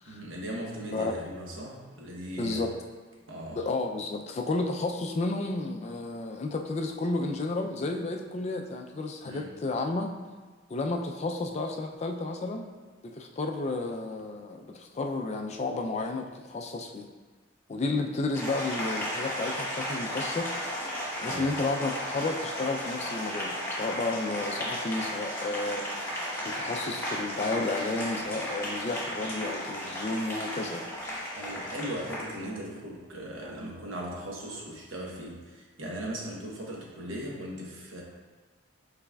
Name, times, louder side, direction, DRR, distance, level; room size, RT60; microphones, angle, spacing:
voice 1, 0.0-2.7 3.3-3.6 9.2-9.5 21.2-21.5 31.3-38.0, equal, 65° right, -2 dB, 1.0 m, -38 dB
voice 2, 2.4-2.7 3.6-10.2 10.7-12.7 13.0-17.1 17.7-20.5 21.2-30.9, left 2 dB, 30° left, 4 dB, 0.3 m, -32 dB
Applause, 18.3-32.4, equal, 10° left, 1.0 m, -34 dB
sound 1, 28.2-35.2, right 2 dB, 85° right, 1.3 m, -52 dB
5.6 x 4.1 x 2.3 m, 1.4 s
head